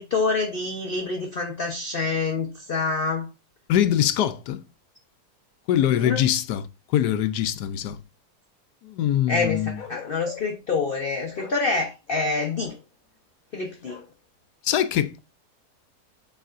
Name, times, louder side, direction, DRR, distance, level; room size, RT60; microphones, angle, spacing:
voice 1, 0.0-3.3 5.9-6.2 9.3-12.7 13.5-14.0, left 3 dB, 40° left, 0.9 m, -26 dB
voice 2, 3.7-4.6 5.7-6.6 6.9-8.0 8.8-9.8 14.6-15.2, left 11 dB, 85° left, 1.2 m, -23 dB
Bark, 9.7-10.6 11.3-11.6 12.1-12.8 13.8-14.1, left 6 dB, 60° left, 1.5 m, -42 dB
8.0 x 4.8 x 2.5 m
omnidirectional pair, 1.7 m